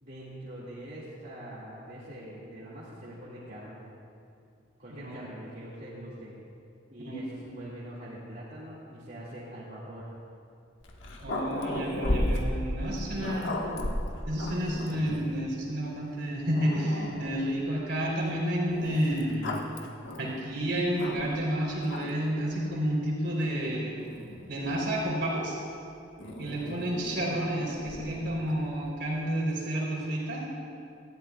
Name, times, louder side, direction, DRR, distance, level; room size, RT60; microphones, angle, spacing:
voice 1, 0.0-3.8 4.8-6.4 6.9-10.1 13.0-13.5 26.4-26.9, right 1 dB, 50° right, -9 dB, 2.1 m, -43 dB
Growling, 10.8-15.4 16.1-16.2 16.5-17.6 18.7-21.5 21.8-22.4 23.2-25.1 26.2-28.7, left 1 dB, 85° left, 1.3 m, -36 dB
voice 2, 11.2-13.6 14.3-19.5 20.2-24.0 24.5-25.5 26.4-30.4, equal, 65° right, -4 dB, 3.5 m, -30 dB
19.5 x 14.0 x 2.4 m, 2.5 s
head